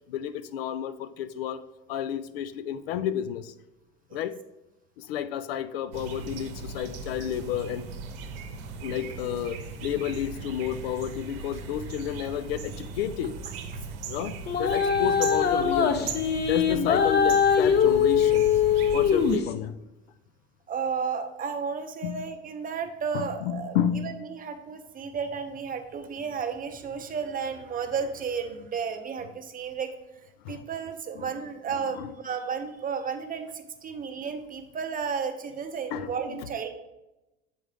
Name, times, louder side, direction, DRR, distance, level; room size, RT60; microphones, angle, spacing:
voice 1, 0.1-1.6 1.9-3.5 4.1-4.4 5.0-7.9 8.8-13.4 14.1-16.1 16.5-18.5 18.9-19.8 22.0-22.3 23.1-24.2 30.4-30.6 31.9-32.1 35.9-36.1, left 10 dB, 75° left, 0.5 m, -31 dB
sound 1, 5.9-19.4, right 4 dB, 70° right, 0.9 m, -38 dB
sound 2, 14.5-19.5, left 7 dB, 35° left, 0.7 m, -22 dB
voice 2, 20.7-29.9 30.5-36.7, right 6 dB, 25° right, 0.8 m, -33 dB
7.8 x 3.6 x 3.4 m
hypercardioid pair, 80°, 31 cm